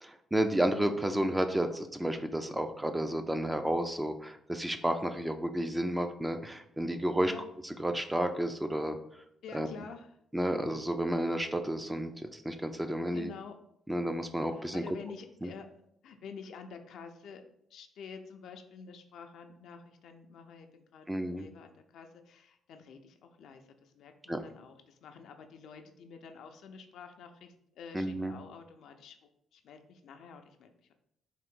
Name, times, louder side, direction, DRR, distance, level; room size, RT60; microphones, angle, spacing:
voice 1, 0.0-7.3 7.8-9.0 9.5-9.7 10.3-13.3 13.9-14.8 15.4-15.5 21.1-21.5 24.3-24.4 27.9-28.3, right 1 dB, 10° right, 7 dB, 0.4 m, -31 dB
voice 2, 9.4-10.1 13.1-13.6 14.5-15.7 16.0-17.4 17.7-29.2 29.5-30.9, left 6 dB, 75° left, 6 dB, 0.4 m, -49 dB
3.7 x 2.6 x 3.6 m, 0.72 s
cardioid pair, 90°, 0 cm